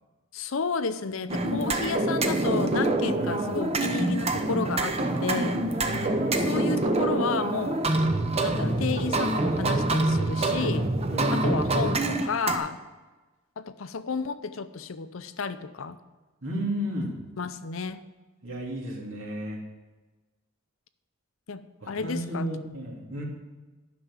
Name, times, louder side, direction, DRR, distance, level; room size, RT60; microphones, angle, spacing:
voice 1, 0.3-5.6 6.4-7.8 8.4-10.9 11.3-12.8 13.6-16.0 17.4-18.0 21.5-22.5, left 4 dB, 70° left, 12 dB, 0.6 m, -32 dB
sound 1, 1.3-12.6, right 2 dB, 30° right, 0.8 m, -26 dB
voice 2, 3.1-3.5 5.8-6.5 11.1-11.6 16.4-17.1 18.4-19.6 21.8-23.2, equal, 70° right, -2 dB, 2.7 m, -33 dB
11.0 x 6.0 x 7.4 m, 1.2 s
head